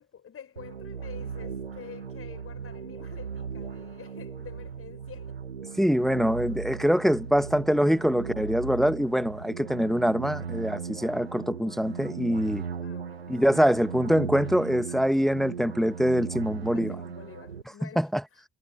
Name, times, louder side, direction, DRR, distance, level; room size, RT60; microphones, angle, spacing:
voice 1, 0.0-5.5 12.8-13.4 16.3-18.4, left 8 dB, 45° left, 7.5 m, -48 dB
sound 1, 0.6-17.6, right 6 dB, 85° right, 1.9 m, -37 dB
voice 2, 5.8-12.6 13.3-16.9 18.0-18.2, equal, ahead, 1.6 m, -24 dB
figure-of-eight pair, 40°, 30 cm